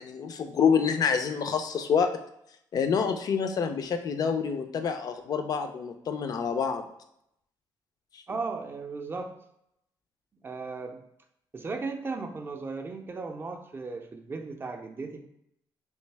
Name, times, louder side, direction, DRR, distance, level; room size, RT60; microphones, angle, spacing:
voice 1, 0.0-2.1 2.7-6.9 8.1-8.2, left 6 dB, 50° left, 7 dB, 0.4 m, -27 dB
voice 2, 8.3-9.3 10.4-11.0 11.5-15.2, right 4 dB, 30° right, 4 dB, 0.5 m, -36 dB
3.2 x 2.7 x 3.3 m, 0.76 s
cardioid pair, 100°, 8 cm